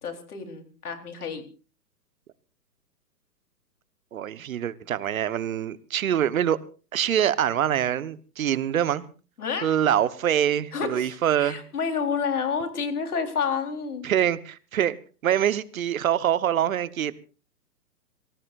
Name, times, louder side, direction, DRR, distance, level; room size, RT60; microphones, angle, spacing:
voice 1, 0.0-1.4 9.4-9.7 10.7-14.1, left 6 dB, 65° left, 4.1 m, -29 dB
voice 2, 4.1-6.6 6.9-9.0 9.6-11.6 14.0-15.0 15.2-17.1, right 10 dB, 55° right, 1.3 m, -24 dB
26.5 x 18.5 x 2.6 m
figure-of-eight pair, 130°, 49 cm